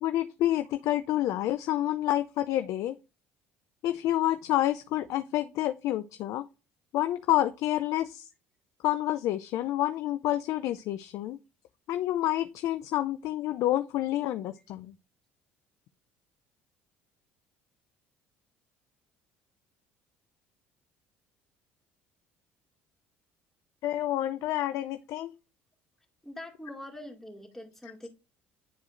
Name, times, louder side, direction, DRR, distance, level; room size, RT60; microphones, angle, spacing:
voice 1, 0.0-2.9 3.8-6.5 6.9-8.3 8.8-11.4 11.9-14.9 23.8-25.3, left 13 dB, 65° left, 0.4 m, -28 dB
voice 2, 26.2-28.1, left 1 dB, 5° left, 2.3 m, -43 dB
9.9 x 4.7 x 2.5 m
hypercardioid pair, 65°, 6 cm